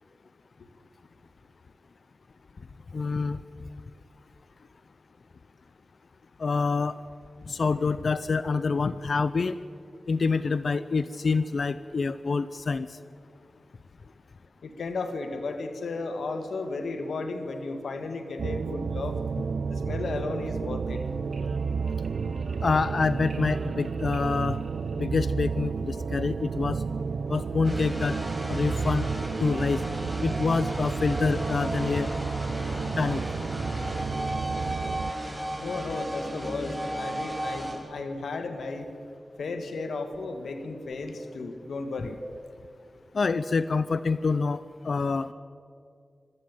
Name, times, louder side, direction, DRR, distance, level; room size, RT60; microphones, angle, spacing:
voice 1, 2.9-3.4 6.4-7.0 7.5-9.6 10.1-12.9 22.6-24.6 25.0-26.8 27.3-28.1 28.5-29.1 29.4-29.8 30.2-32.1 33.0-33.2 43.1-45.3, left 4 dB, 70° left, 14 dB, 0.6 m, -26 dB
voice 2, 14.6-19.2 19.7-21.0 35.6-38.9 39.4-42.2, left 3 dB, 90° left, 7 dB, 1.7 m, -34 dB
sound 1, 18.4-35.1, right 5 dB, 85° right, 0.5 m, -31 dB
sound 2, 20.8-25.5, right 2 dB, 65° right, 1.9 m, -45 dB
sound 3, 27.6-37.8, right 1 dB, 15° right, 6.7 m, -34 dB
22.5 x 13.5 x 8.9 m, 2.3 s
cardioid pair, 45°, 0 cm